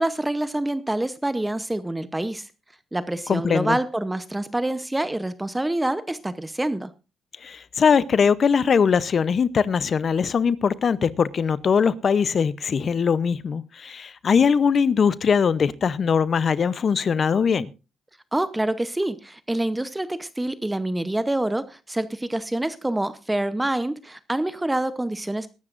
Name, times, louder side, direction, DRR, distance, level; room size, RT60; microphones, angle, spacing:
voice 1, 0.0-2.5 2.9-6.9 18.3-25.5, right 1 dB, 10° right, 0.7 m, -26 dB
voice 2, 3.3-3.8 7.4-17.7, left 6 dB, 50° left, 0.6 m, -21 dB
21.0 x 12.0 x 2.5 m
cardioid pair, 90°, 0 cm